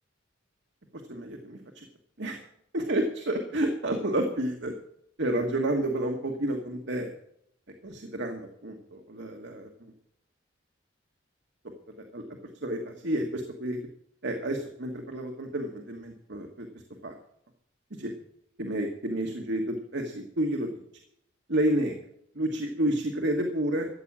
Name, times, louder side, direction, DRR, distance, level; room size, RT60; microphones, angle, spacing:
voice 1, 1.1-1.8 2.2-2.4 2.7-4.7 5.2-7.1 7.8-9.7 11.6-12.3 12.5-13.8 14.2-16.7 17.0-17.2 17.9-18.1 18.6-20.8 21.5-22.0 22.3-23.9, right 1 dB, 60° right, 3 dB, 1.5 m, -30 dB
13.5 x 8.5 x 7.4 m, 0.72 s
head